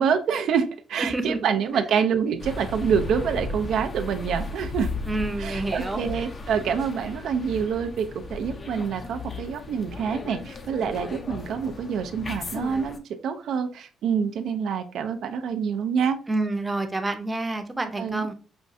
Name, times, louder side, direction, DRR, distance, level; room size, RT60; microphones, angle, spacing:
voice 1, 0.0-4.9 5.4-16.2 18.0-18.3, right 7 dB, 75° right, 6 dB, 0.4 m, -26 dB
sound 1, 2.4-13.0, left 2 dB, 40° left, 0.6 m, -35 dB
voice 2, 5.1-6.0 16.3-18.3, right 2 dB, 15° right, 6 dB, 0.6 m, -28 dB
5.2 x 2.3 x 2.5 m, 0.36 s
cardioid pair, 90°, 0 cm